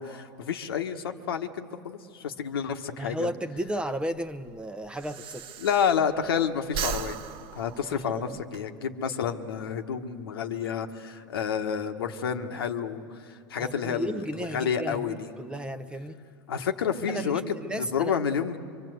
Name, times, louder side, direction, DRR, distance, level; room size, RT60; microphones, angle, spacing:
voice 1, 0.0-3.3 5.6-7.2 7.5-15.3 16.5-18.6, left 7 dB, 90° left, 5 dB, 1.4 m, -30 dB
voice 2, 3.0-5.5 8.0-8.2 13.6-16.3 17.1-18.1, right 1 dB, 10° right, 11 dB, 0.9 m, -34 dB
Breathing, 3.6-6.3 6.6-8.6, right 7 dB, 50° right, 1.0 m, -37 dB
25.0 x 24.5 x 7.9 m, 2.4 s
hypercardioid pair, 110°, 12 cm